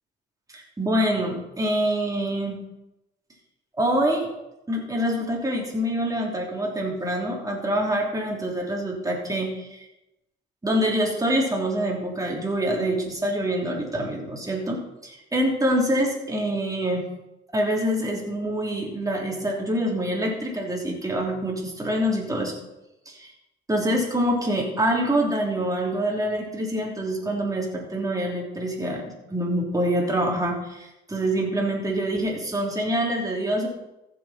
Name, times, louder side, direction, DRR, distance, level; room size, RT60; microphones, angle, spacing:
voice 1, 0.5-2.6 3.8-4.3 4.7-9.8 10.6-14.8 15.0-17.0 17.5-22.5 23.1-23.3 23.7-29.0 29.3-33.7, right 1 dB, 15° right, -1 dB, 3.1 m, -25 dB
15.0 x 6.9 x 4.3 m, 0.93 s
cardioid pair, 90°, 20 cm